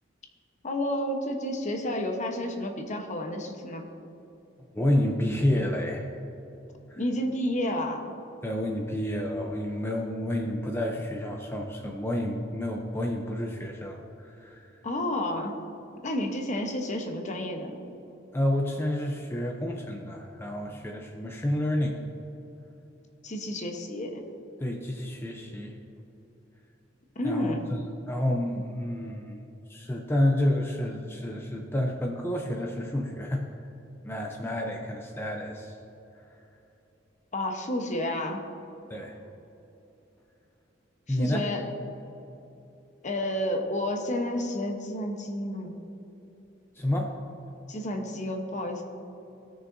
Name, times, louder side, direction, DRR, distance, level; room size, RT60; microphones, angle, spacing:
voice 1, 0.6-3.8 7.0-8.1 14.8-15.6 16.0-17.8 23.2-24.2 27.2-27.7 37.3-38.5 41.1-41.7 43.0-45.8 47.7-48.8, left 1 dB, 40° left, 4 dB, 0.9 m, -30 dB
voice 2, 4.7-6.1 6.9-7.0 8.4-14.7 18.3-22.0 24.6-25.7 27.2-27.6 28.1-29.4 29.7-33.4 34.0-35.7 38.9-39.2 41.1-41.5 46.8-47.1, left 1 dB, 10° left, 0 dB, 0.6 m, -29 dB
17.5 x 6.3 x 2.6 m, 3.0 s
head